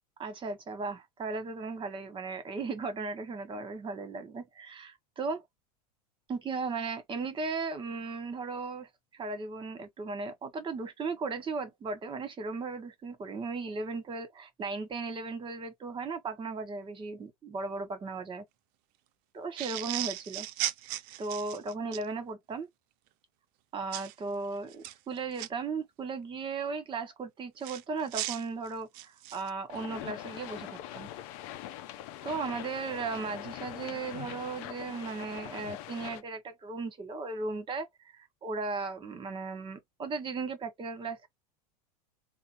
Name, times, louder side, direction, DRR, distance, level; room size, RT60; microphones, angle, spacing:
voice 1, 0.2-5.4 6.3-18.4 19.3-20.5 21.2-22.7 23.7-31.1 32.2-37.9 38.1-41.3, right 4 dB, 25° right, 1.2 m, -36 dB
sound 1, 19.6-22.0 23.9-24.1 24.7-25.5 27.6-29.5, right 15 dB, 50° right, 0.5 m, -36 dB
sound 2, 29.7-36.2, left 13 dB, 60° left, 0.6 m, -42 dB
3.4 x 2.0 x 2.9 m
hypercardioid pair, 95°, 20 cm